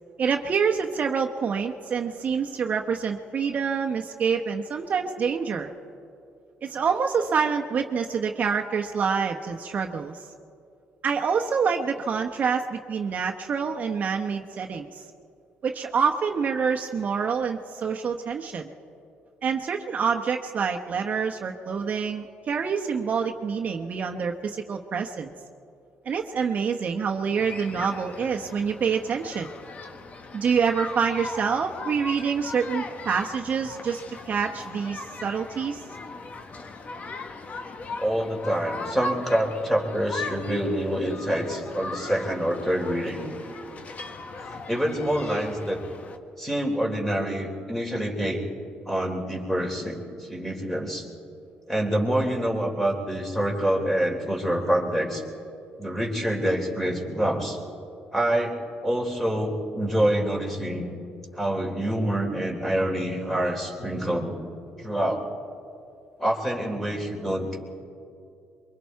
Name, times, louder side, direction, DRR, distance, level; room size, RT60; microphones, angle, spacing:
voice 1, 0.2-5.7 6.6-10.3 11.0-15.0 15.6-18.7 19.4-25.3 26.0-29.5 30.3-35.8, right 6 dB, 50° right, 2 dB, 1.0 m, -26 dB
sound 1, 27.4-46.2, left 3 dB, 45° left, 1.4 m, -39 dB
voice 2, 38.0-43.3 44.7-45.8 46.4-48.4 48.9-51.1 51.7-55.2 55.8-57.6 58.1-60.9 61.4-64.3 64.8-65.2 66.2-67.6, right 1 dB, 5° left, 1 dB, 3.5 m, -26 dB
23.5 x 23.0 x 4.7 m, 2.5 s
cardioid pair, 85°, 4 cm